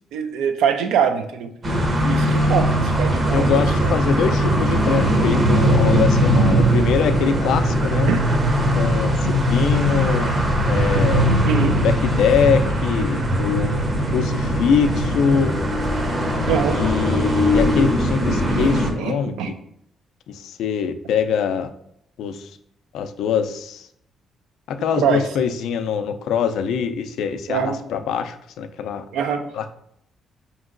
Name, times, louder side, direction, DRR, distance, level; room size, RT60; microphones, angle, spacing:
voice 1, 0.1-1.5 2.0-3.9 8.1-8.2 11.4-11.8 16.5-16.8 19.0-19.5 25.0-25.2 27.5-27.8 29.1-29.5, right 7 dB, 90° right, 7 dB, 0.4 m, -23 dB
sound 1, 1.6-18.9, equal, 40° right, 0.8 m, -20 dB
voice 2, 3.3-8.1 8.7-10.3 10.7-11.3 11.8-13.7 14.1-15.6 16.7-19.3 20.3-21.7 22.2-22.5 22.9-23.9 24.7-29.0 29.5-29.7, left 7 dB, 80° left, 9 dB, 0.3 m, -23 dB
5.2 x 2.9 x 2.5 m, 0.72 s
cardioid pair, 90°, 0 cm